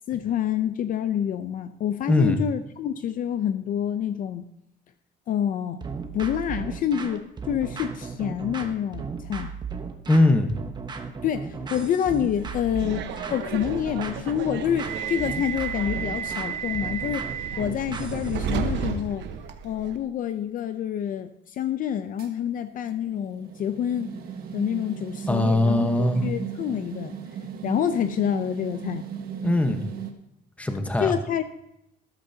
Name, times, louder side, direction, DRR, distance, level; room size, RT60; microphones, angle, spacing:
voice 1, 0.1-4.5 5.3-5.8 6.1-9.5 11.2-17.3 17.6-19.3 19.6-24.1 24.5-27.2 27.6-29.0 31.0-31.4, left 9 dB, 45° left, 10 dB, 0.6 m, -27 dB
voice 2, 2.1-2.4 10.1-10.5 25.3-26.2 29.4-29.8 30.6-31.1, left 1 dB, 5° left, 6 dB, 1.1 m, -21 dB
sound 1, 5.8-18.5, right 5 dB, 25° right, 1.0 m, -35 dB
Subway metro underground, 12.4-20.0, right 7 dB, 70° right, 1.1 m, -32 dB
sound 2, 22.2-30.1, right 8 dB, 55° right, 1.5 m, -37 dB
13.5 x 12.5 x 2.8 m, 0.84 s
cardioid pair, 155°, 19 cm